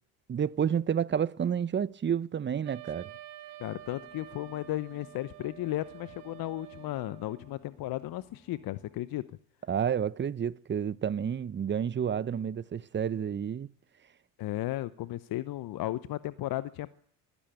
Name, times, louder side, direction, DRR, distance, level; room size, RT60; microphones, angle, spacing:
voice 1, 0.3-3.1 9.7-13.7, right 8 dB, 25° right, 0.7 m, -30 dB
Wind instrument woodwind instrument, 2.6-7.5, right 16 dB, 70° right, 3.6 m, -49 dB
voice 2, 3.6-9.2 14.4-17.0, left 15 dB, 50° left, 0.8 m, -35 dB
sound 1, 3.8-9.0, left 3 dB, 20° left, 6.3 m, -61 dB
24.0 x 12.5 x 9.0 m
hypercardioid pair, 65°, 45 cm